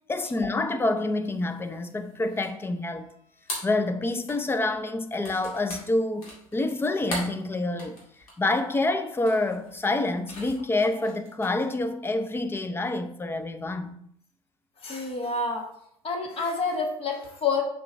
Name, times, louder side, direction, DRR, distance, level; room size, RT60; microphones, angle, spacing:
voice 1, 0.1-3.1 3.6-8.0 8.4-14.0, left 2 dB, 15° left, 0.6 m, -27 dB
sound 1, 1.2-11.6, left 1 dB, 75° left, 2.1 m, -41 dB
voice 2, 14.8-15.7 16.0-17.6, left 4 dB, 30° left, 1.3 m, -28 dB
6.0 x 4.8 x 3.4 m
figure-of-eight pair, 70°, 18 cm